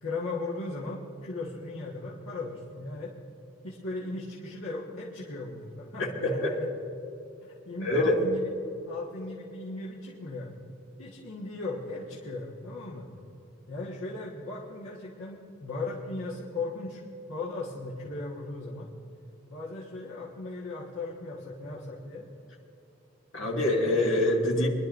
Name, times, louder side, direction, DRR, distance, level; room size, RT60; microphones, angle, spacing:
voice 1, 0.0-3.1 3.6-6.7 7.4-8.5 8.9-10.6 11.0-13.1 13.7-17.0 17.3-18.9 19.5-22.3, left 2 dB, 90° left, -6 dB, 1.5 m, -37 dB
voice 2, 6.0-6.5 7.8-8.2 23.3-24.7, left 1 dB, 75° left, -3 dB, 2.3 m, -25 dB
24.5 x 11.0 x 2.6 m, 2.9 s
head